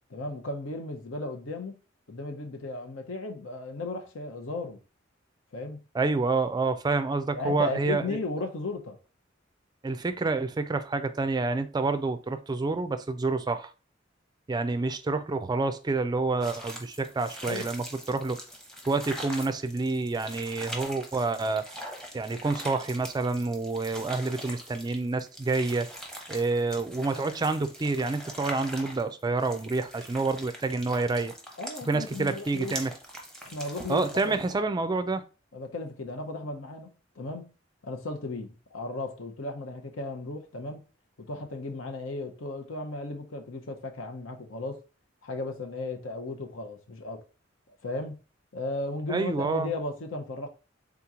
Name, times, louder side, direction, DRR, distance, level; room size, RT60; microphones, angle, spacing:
voice 1, 0.1-1.8 2.1-4.8 5.5-5.9 7.3-9.0 17.4-17.6 31.6-32.8 33.4-34.4 35.5-37.5 37.8-40.8 41.2-44.8 45.2-47.2 47.8-48.2 48.5-50.5, left 2 dB, 80° left, 0.8 m, -35 dB
voice 2, 5.9-8.2 9.8-13.7 14.5-18.4 18.9-21.6 22.1-25.9 26.3-31.3 31.9-32.9 33.9-35.2 49.1-49.7, right 3 dB, 20° right, 0.4 m, -28 dB
sound 1, 16.4-34.5, equal, 5° left, 0.8 m, -43 dB
3.7 x 3.0 x 3.6 m
head